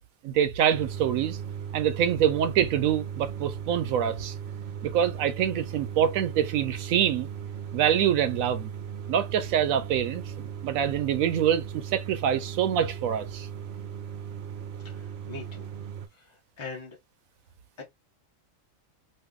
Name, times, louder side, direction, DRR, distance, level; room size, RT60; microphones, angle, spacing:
voice 1, 0.2-1.4 1.7-4.3 4.8-7.3 7.7-8.7 9.1-13.5, right 9 dB, 90° right, 1.1 m, -25 dB
sound 1, 0.7-16.1, right 8 dB, 60° right, 0.8 m, -37 dB
voice 2, 14.8-15.7 16.1-17.0 17.8-17.9, left 4 dB, 25° left, 0.8 m, -42 dB
2.8 x 2.5 x 3.6 m
omnidirectional pair, 1.4 m